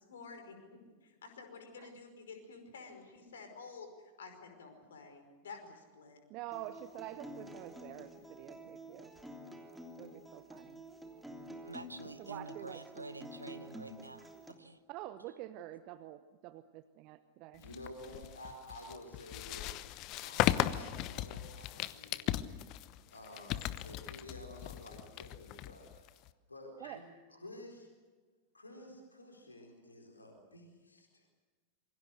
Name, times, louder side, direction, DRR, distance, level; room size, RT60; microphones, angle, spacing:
voice 1, 0.1-6.2, left 4 dB, 65° left, 5.2 m, -51 dB
voice 2, 6.3-9.1 10.0-10.8 12.2-13.0 14.9-17.7 26.8-27.0, right 14 dB, 40° right, 0.9 m, -47 dB
Acoustic guitar, 6.5-14.5, right 1 dB, 5° right, 3.1 m, -50 dB
voice 3, 11.6-14.3 14.6-14.8, right 2 dB, 80° right, 0.9 m, -48 dB
voice 4, 17.6-22.4 23.1-26.1 26.5-27.0 27.3-27.9 28.5-31.2, left 1 dB, 80° left, 4.4 m, -51 dB
sound 1, 17.6-26.3, left 14 dB, 40° left, 1.0 m, -37 dB
27.0 x 24.0 x 6.6 m
figure-of-eight pair, 90°, 0 cm